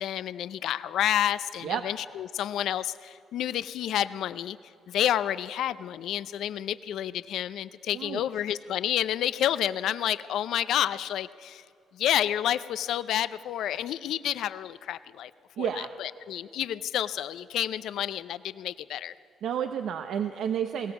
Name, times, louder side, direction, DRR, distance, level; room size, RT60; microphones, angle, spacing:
voice 1, 0.0-4.6 4.9-11.6 11.9-15.3 15.6-15.7 16.0-19.1, left 11 dB, 80° left, 14 dB, 0.5 m, -29 dB
voice 2, 15.6-15.9 19.4-20.9, right 8 dB, 75° right, 7 dB, 0.8 m, -30 dB
21.5 x 17.5 x 7.1 m, 2.4 s
cardioid pair, 90°, 0 cm